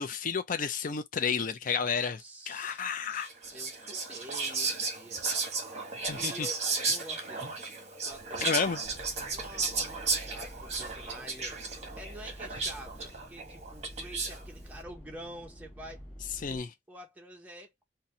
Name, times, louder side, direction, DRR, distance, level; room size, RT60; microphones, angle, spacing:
voice 1, 0.0-3.3 6.1-6.5 8.4-8.8 16.4-16.7, left 6 dB, 45° left, 0.4 m, -31 dB
voice 2, 1.7-3.1 3.5-5.2 6.2-6.5 6.9-7.5 8.0-8.6 9.3-11.6 11.9-16.0 16.4-17.8, right 1 dB, 10° right, 0.8 m, -48 dB
Whispering, 3.1-14.4, right 4 dB, 35° right, 1.1 m, -34 dB
sound 1, 8.8-16.6, equal, 10° left, 1.6 m, -48 dB
4.1 x 2.2 x 2.7 m
head